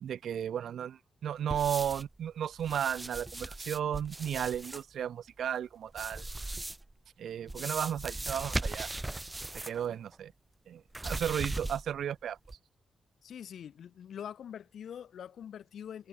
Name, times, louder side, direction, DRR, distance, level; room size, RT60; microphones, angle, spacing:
voice 1, 0.0-6.2 7.2-8.9 9.6-10.3 10.7-12.4, right 9 dB, 75° right, 1.3 m, -34 dB
sound 1, 1.5-2.1 2.6-4.8 5.9-6.9 7.5-9.9 10.1-10.2 10.9-12.0 12.5-12.6, right 2 dB, 10° right, 0.4 m, -38 dB
voice 2, 13.2-16.1, left 9 dB, 65° left, 1.7 m, -44 dB
wide cardioid pair, 165°, 0 cm